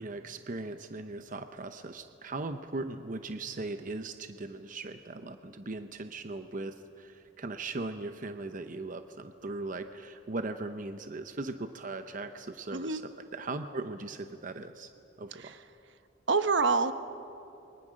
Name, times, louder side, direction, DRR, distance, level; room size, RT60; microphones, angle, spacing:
voice 1, 0.0-13.0 13.3-14.9 15.2-15.5, right 2 dB, 45° right, 8 dB, 0.8 m, -39 dB
voice 2, 12.7-13.0 15.3-15.6 16.3-16.9, right 4 dB, 65° right, 10 dB, 1.0 m, -27 dB
28.5 x 23.0 x 6.4 m, 2.7 s
head